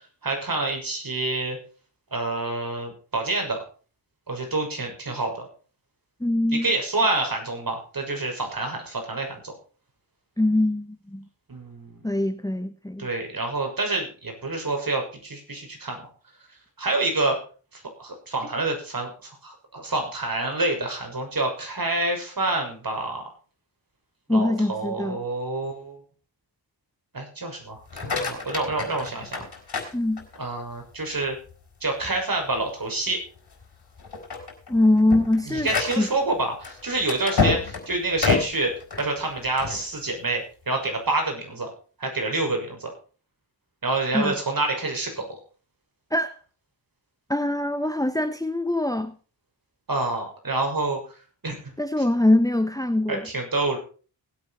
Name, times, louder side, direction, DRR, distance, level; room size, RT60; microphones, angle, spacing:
voice 1, 0.2-1.6 2.1-3.6 4.3-5.5 6.5-9.5 11.5-12.1 13.0-16.1 16.8-17.4 17.7-23.2 24.3-26.0 27.1-29.5 30.4-31.4 31.8-33.2 35.5-41.7 42.0-42.9 43.8-45.4 49.9-51.0 51.4-51.7 53.1-53.8, right 2 dB, 50° right, 3 dB, 6.5 m, -27 dB
voice 2, 6.2-6.7 10.4-11.3 12.0-13.1 24.3-25.2 29.9-30.2 34.7-35.7 36.0-36.1 44.1-44.3 46.1-46.4 47.3-49.1 51.8-53.2, left 1 dB, 10° left, 10 dB, 1.1 m, -23 dB
sound 1, 27.8-30.6 31.1-31.5 32.0-32.1 32.5-32.7 33.4-33.6 34.0-39.8, left 4 dB, 60° left, 4.4 m, -28 dB
19.5 x 8.7 x 4.5 m, 0.38 s
cardioid pair, 55°, 43 cm